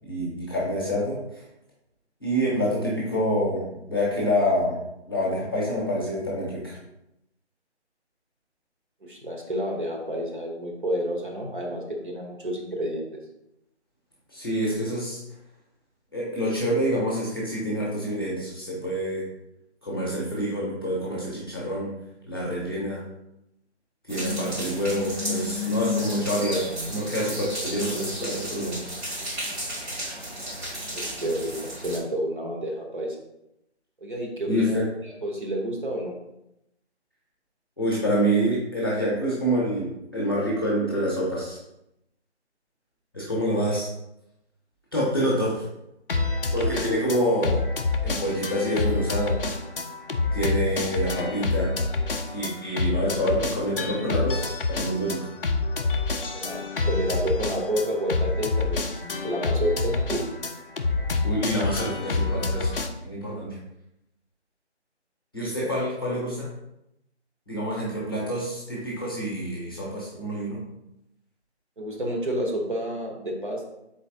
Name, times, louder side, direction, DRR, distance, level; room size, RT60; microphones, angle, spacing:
voice 1, 0.0-1.5 2.2-4.8 5.1-6.8 14.3-15.2 16.1-19.2 19.8-21.9 22.3-23.0 24.0-29.0 34.5-34.9 37.8-41.6 43.1-43.9 44.9-45.7 46.5-47.6 48.0-49.4 50.3-51.7 52.3-55.3 61.2-62.7 63.0-63.6 65.3-66.5 67.5-70.6, equal, 20° left, -6 dB, 0.8 m, -27 dB
voice 2, 9.0-13.0 30.9-33.2 34.0-34.8 35.2-36.1 56.3-60.2 71.8-73.7, equal, 50° right, -1 dB, 0.9 m, -30 dB
sound 1, 24.1-32.0, left 1 dB, 65° right, 1.5 m, -32 dB
sound 2, 46.1-62.9, left 3 dB, 55° left, 0.4 m, -27 dB
4.0 x 2.9 x 3.7 m, 0.84 s
figure-of-eight pair, 165°, 34 cm